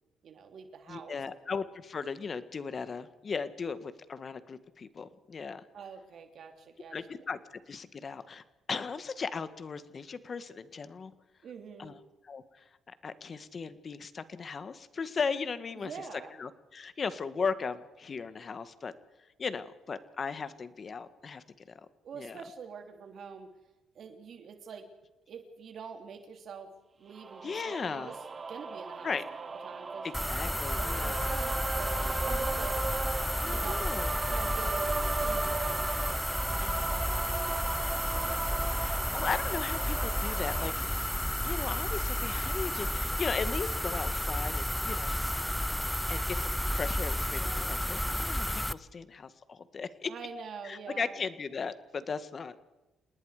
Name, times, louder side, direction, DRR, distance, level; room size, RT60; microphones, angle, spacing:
voice 1, 0.2-1.2 5.7-7.3 11.4-12.0 15.8-16.3 22.0-23.5 23.9-24.9 25.3-26.7 27.0-28.2 28.5-30.1 30.7-32.8 33.4-33.7 34.3-36.2 36.5-38.9 47.3-47.7 50.0-51.2, right 6 dB, 60° right, 5 dB, 3.1 m, -46 dB
voice 2, 0.9-5.6 6.9-8.4 8.7-11.1 11.8-12.0 12.2-15.9 16.4-18.9 19.4-21.4 22.2-22.4 27.4-28.1 29.0-29.2 30.0-31.2 33.4-34.2 36.6-36.9 38.8-41.1 41.4-45.2 46.1-50.1 50.6-52.6, left 5 dB, 40° left, 12 dB, 1.7 m, -37 dB
sound 1, 27.1-40.7, right 4 dB, 35° right, 1.6 m, -37 dB
sound 2, 30.1-48.7, left 1 dB, 5° left, 0.8 m, -32 dB
28.0 x 20.0 x 5.0 m, 1.1 s
cardioid pair, 90°, 0 cm